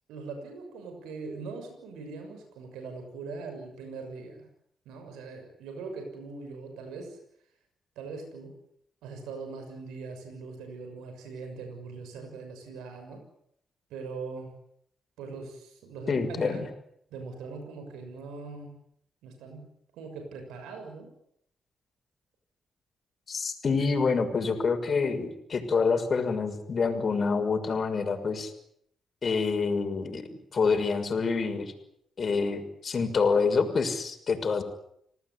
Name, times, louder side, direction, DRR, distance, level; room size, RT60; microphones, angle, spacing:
voice 1, 0.1-4.5 4.8-7.2 7.9-8.5 9.0-13.2 13.9-14.5 15.2-16.6 17.1-18.7 19.2-19.6 19.9-21.1, right 4 dB, 85° right, 5 dB, 6.5 m, -41 dB
voice 2, 16.1-16.7 23.3-28.5 29.2-31.7 32.2-34.6, left 4 dB, 55° left, 7 dB, 6.3 m, -27 dB
29.0 x 18.5 x 10.0 m, 0.74 s
supercardioid pair, 45°, 0 cm